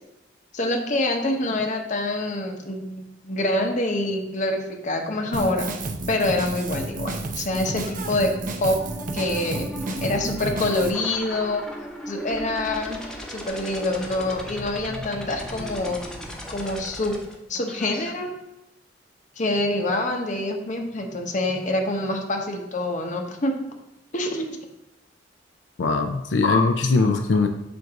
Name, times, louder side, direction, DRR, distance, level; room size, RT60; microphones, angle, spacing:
voice 1, 0.5-5.7 6.1-8.3 8.6-8.8 9.1-9.7 10.0-11.6 12.1-13.0 13.3-16.0 16.5-17.2 17.5-18.3 19.4-23.5 24.1-24.6 26.4-26.6 27.0-27.2, left 2 dB, 40° left, 3 dB, 0.8 m, -26 dB
Drum kit, 5.3-10.9, right 2 dB, 45° right, 0.6 m, -31 dB
sound 1, 8.8-18.1, equal, 5° left, 0.7 m, -37 dB
voice 2, 25.8-27.5, left 3 dB, 80° left, 5 dB, 0.5 m, -21 dB
7.7 x 2.6 x 5.8 m, 0.91 s
head